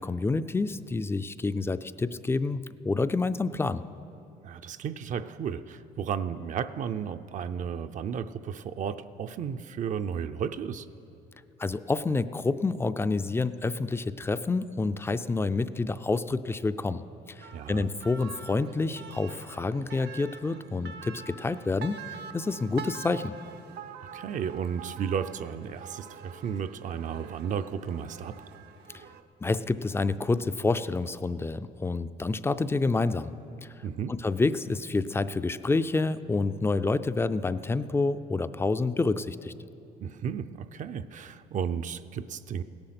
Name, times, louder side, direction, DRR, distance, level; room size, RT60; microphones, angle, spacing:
voice 1, 0.0-3.8 11.6-23.3 28.9-29.0 29.4-33.3 33.6-33.7 34.1-39.5, left 3 dB, 15° left, 13 dB, 0.4 m, -28 dB
voice 2, 4.4-10.9 17.5-17.9 24.1-28.4 33.8-34.2 40.0-42.6, right 7 dB, 50° right, 10 dB, 0.5 m, -33 dB
sound 1, 17.4-29.2, right 7 dB, 75° right, 0.8 m, -45 dB
17.0 x 10.5 x 5.9 m, 2.9 s
cardioid pair, 110°, 17 cm